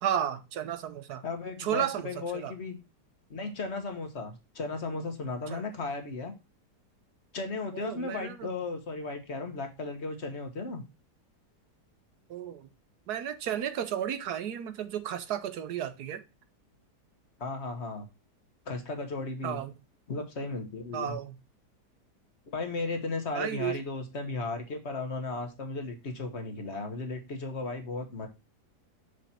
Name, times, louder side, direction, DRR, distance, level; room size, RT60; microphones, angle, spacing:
voice 1, 0.0-1.2 1.6-2.5 5.5-5.6 7.7-8.5 12.3-12.7 13.1-16.2 19.4-19.7 20.9-21.3 23.3-23.8, right 10 dB, 70° right, 1.4 m, -33 dB
voice 2, 1.2-2.8 3.3-6.3 7.3-10.8 17.4-18.1 18.6-19.6 20.1-21.2 22.4-28.3, left 3 dB, 45° left, 1.5 m, -35 dB
6.7 x 5.1 x 4.3 m
omnidirectional pair, 1.8 m